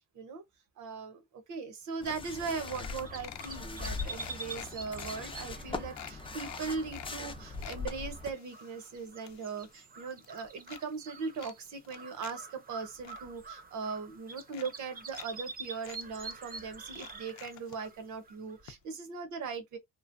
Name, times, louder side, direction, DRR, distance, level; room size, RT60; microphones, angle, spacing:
voice 1, 0.8-19.8, right 5 dB, 75° right, 1.0 m, -39 dB
sound 1, 2.0-2.1 2.3-2.4 2.7-3.6 4.1-5.1 5.6-5.7 6.0-7.1 7.4-7.8 8.3-9.9 10.1-10.8 11.4-12.3 12.7-13.2 14.0-14.1 14.5-15.3 15.5-15.6 15.8-16.0 16.9-17.8 18.7-18.8 19.1-19.2, left 12 dB, 65° left, 0.5 m, -48 dB
sound 2, 2.0-8.3, left 3 dB, 15° left, 0.5 m, -41 dB
sound 3, 2.7-18.7, right 4 dB, 30° right, 0.6 m, -47 dB
3.1 x 2.1 x 2.5 m
cardioid pair, 90°, 30 cm